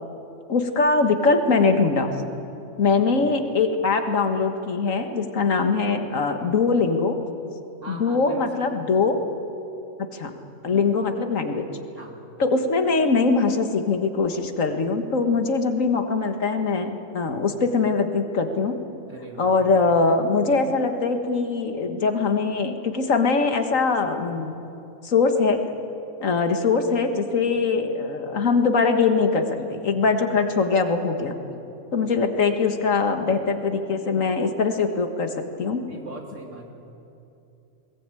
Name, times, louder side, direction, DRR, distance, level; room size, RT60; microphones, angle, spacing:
voice 1, 0.5-2.1 2.8-7.2 7.9-9.2 10.0-10.3 10.6-11.7 12.4-18.8 19.4-24.5 25.0-25.6 26.2-31.3 31.9-35.8, left 4 dB, 75° left, 6 dB, 1.9 m, -22 dB
voice 2, 2.8-3.2 7.8-8.8 10.7-10.8 12.0-12.1 19.1-19.5 29.5-29.8 30.1-30.2 31.5-31.7 35.9-36.7, right 2 dB, 65° right, 1 dB, 3.0 m, -41 dB
20.5 x 19.5 x 9.1 m, 2.8 s
omnidirectional pair, 1.4 m